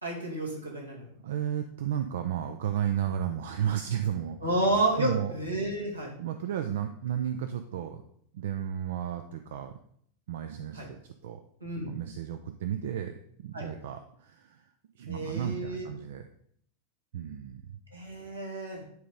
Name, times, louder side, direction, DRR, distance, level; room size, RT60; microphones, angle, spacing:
voice 1, 0.0-1.0 4.4-6.1 10.7-10.9 11.6-11.9 13.5-13.7 15.1-15.9 17.9-18.9, right 1 dB, 80° right, -2 dB, 2.3 m, -30 dB
voice 2, 1.2-4.6 5.0-5.4 6.0-8.0 8.3-9.8 10.3-11.4 11.8-16.3 17.1-17.8, right 10 dB, 55° right, 7 dB, 0.5 m, -33 dB
9.4 x 4.0 x 5.1 m, 0.66 s
figure-of-eight pair, 90°, 0 cm